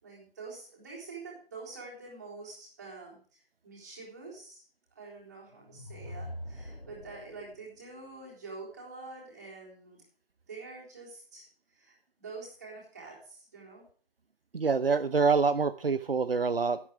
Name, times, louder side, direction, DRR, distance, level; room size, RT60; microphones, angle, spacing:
voice 1, 0.0-4.6 4.9-10.0 10.5-11.5 11.7-13.9, right 3 dB, 20° right, -4 dB, 3.7 m, -46 dB
sound 1, 5.5-7.6, equal, 65° left, 5.4 m, -43 dB
voice 2, 14.5-16.8, right 4 dB, 70° right, 11 dB, 0.8 m, -26 dB
12.0 x 12.0 x 3.5 m, 0.43 s
figure-of-eight pair, 170°, 30 cm